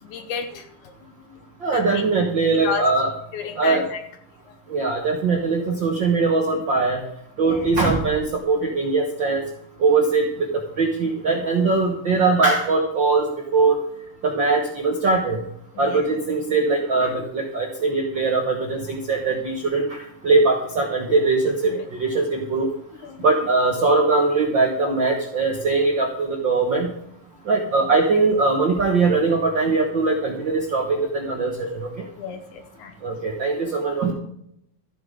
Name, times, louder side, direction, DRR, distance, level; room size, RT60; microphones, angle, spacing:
voice 1, 0.0-1.5 1.7-2.0 2.6-2.8 3.3-4.0 4.5-4.6 7.4-7.7 15.7-16.1 16.7-16.8 17.2-17.3 21.1-21.2 21.6-21.9 23.0-23.3 25.1-25.2 27.7-27.9 32.1-32.9, left 6 dB, 70° left, 7 dB, 2.0 m, -33 dB
voice 2, 1.6-3.1 3.6-3.8 4.7-7.0 7.4-9.5 9.8-10.5 10.8-13.8 14.2-15.4 15.8-20.0 20.2-22.7 23.2-27.0 27.5-32.0 33.0-34.1, right 3 dB, 60° right, 1 dB, 1.2 m, -21 dB
14.0 x 8.0 x 5.1 m, 0.72 s
omnidirectional pair, 4.1 m